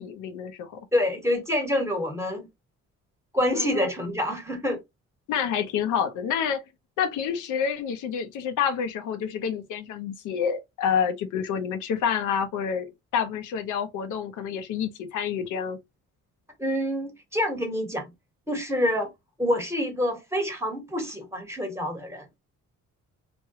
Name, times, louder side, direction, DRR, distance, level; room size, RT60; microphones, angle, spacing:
voice 1, 0.0-0.8 3.5-3.9 5.3-6.6 7.0-12.9 13.1-15.8, left 7 dB, 85° left, 0.7 m, -28 dB
voice 2, 0.9-2.5 3.3-4.8 16.6-18.1 18.5-19.1 19.4-22.2, left 1 dB, 10° right, 1.2 m, -27 dB
3.2 x 2.2 x 2.8 m
cardioid pair, 90°, 30 cm